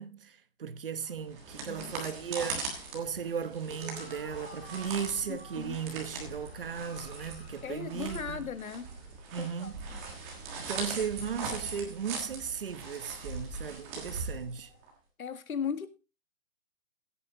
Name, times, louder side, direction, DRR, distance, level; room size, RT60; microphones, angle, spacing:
voice 1, 0.0-8.5 9.3-9.8 10.6-14.7, right 7 dB, 40° right, 1.0 m, -36 dB
sound 1, 1.0-9.5 9.8-12.2 12.7-13.3, left 1 dB, 5° left, 0.7 m, -50 dB
sound 2, 1.2-14.9, right 4 dB, 10° right, 1.5 m, -41 dB
voice 2, 1.7-2.1 5.3-5.8 7.6-8.9 9.4-10.0 15.2-15.9, left 7 dB, 85° left, 1.9 m, -38 dB
16.5 x 8.7 x 3.8 m
hypercardioid pair, 175°, 41 cm